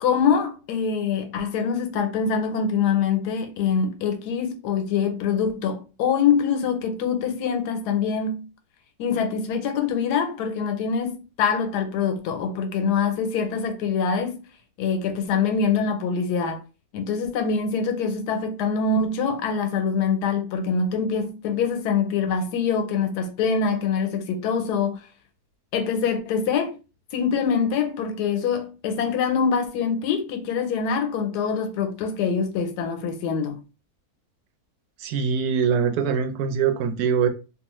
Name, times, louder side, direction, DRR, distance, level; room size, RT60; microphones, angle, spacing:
voice 1, 0.0-8.5 9.0-14.4 14.8-16.6 16.9-25.0 25.7-26.7 27.1-33.6, left 6 dB, 90° left, 1.2 m, -24 dB
voice 2, 35.0-37.3, right 6 dB, 80° right, 1.1 m, -23 dB
2.6 x 2.4 x 2.9 m
omnidirectional pair, 1.7 m